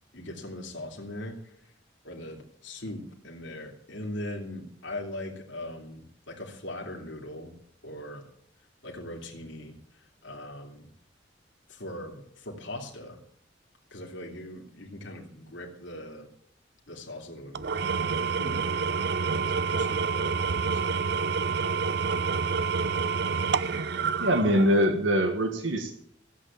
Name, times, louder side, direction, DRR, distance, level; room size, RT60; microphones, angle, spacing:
voice 1, 0.1-1.4 2.0-7.5 7.8-8.2 8.8-9.8 10.2-10.9 11.7-13.2 13.9-16.3 16.9-18.0 18.4-18.6 19.4-21.0, left 1 dB, 80° left, 0 dB, 2.7 m, -40 dB
Engine / Tools, 17.5-25.0, right 5 dB, 60° right, 0.6 m, -28 dB
voice 2, 24.2-25.9, equal, 85° right, 5 dB, 1.8 m, -23 dB
15.0 x 8.3 x 8.7 m, 0.68 s
head